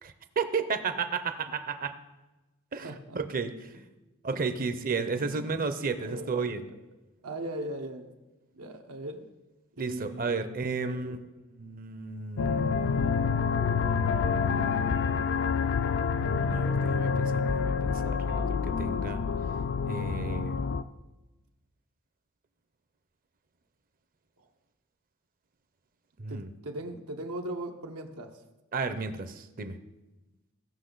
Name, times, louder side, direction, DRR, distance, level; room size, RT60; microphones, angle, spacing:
voice 1, 0.0-1.9 2.7-3.6 4.2-6.7 9.8-11.2 11.6-13.1 16.2-19.2 19.9-20.6 26.2-26.5 28.7-29.8, right 4 dB, 40° right, 11 dB, 0.7 m, -33 dB
voice 2, 2.8-3.2 4.3-4.4 5.1-5.7 6.1-6.8 7.2-8.1 8.5-9.3 9.8-11.2 14.5-15.0 24.4-24.5 26.3-28.4, right 1 dB, 85° right, 4 dB, 1.1 m, -40 dB
sound 1, 12.4-20.8, left 5 dB, 60° left, 0.4 m, -27 dB
16.5 x 5.9 x 3.9 m, 1.1 s
head